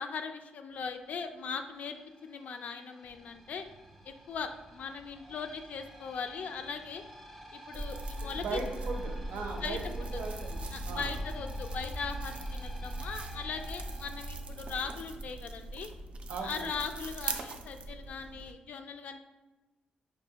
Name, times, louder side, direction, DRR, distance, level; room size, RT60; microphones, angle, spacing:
voice 1, 0.0-3.7 4.0-7.0 7.5-8.6 9.6-9.8 10.7-15.9 16.4-19.2, left 5 dB, 60° left, 7 dB, 0.3 m, -39 dB
sound 1, 0.7-15.3, equal, ahead, 0.6 m, -52 dB
sound 2, 7.7-18.5, right 2 dB, 40° right, 0.4 m, -39 dB
voice 2, 8.3-11.1 16.3-16.8, right 4 dB, 85° right, 1 dB, 0.7 m, -38 dB
5.3 x 2.3 x 2.8 m, 1.1 s
cardioid pair, 130°, 3 cm